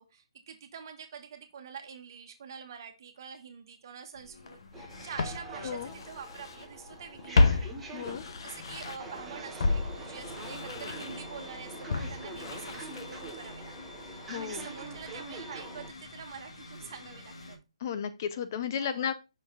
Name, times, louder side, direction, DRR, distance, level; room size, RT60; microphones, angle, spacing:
voice 1, 0.0-7.6 8.4-13.8 14.1-17.6 18.8-19.1, right 7 dB, 40° right, 6 dB, 1.4 m, -46 dB
sound 1, 4.1-17.6, left 2 dB, 70° left, 1.8 m, -49 dB
Walk footsteps, 4.5-4.6 5.2-6.7 6.9-9.2 9.6-13.6 13.9-14.0, left 3 dB, 50° left, 0.9 m, -31 dB
sound 2, 4.7-15.9, right 3 dB, 5° right, 1.1 m, -45 dB
voice 2, 7.9-8.2 14.3-14.7 17.8-19.1, left 8 dB, 35° left, 11 dB, 0.5 m, -33 dB
5.9 x 4.8 x 3.8 m, 0.26 s
hypercardioid pair, 160°, 3 cm